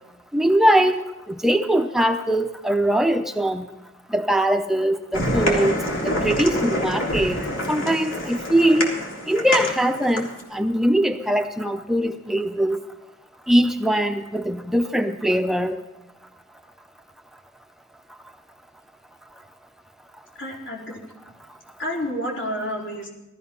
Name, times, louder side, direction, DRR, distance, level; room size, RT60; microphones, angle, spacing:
voice 1, 0.3-3.7 4.1-7.4 7.7-8.9 9.3-12.8 13.5-15.8, right 1 dB, ahead, 6 dB, 0.6 m, -21 dB
sound 1, 5.1-10.4, left 1 dB, 80° left, 3.4 m, -26 dB
voice 2, 20.4-21.0 21.8-23.1, equal, 65° left, -2 dB, 4.5 m, -29 dB
18.5 x 13.5 x 5.5 m, 0.99 s
head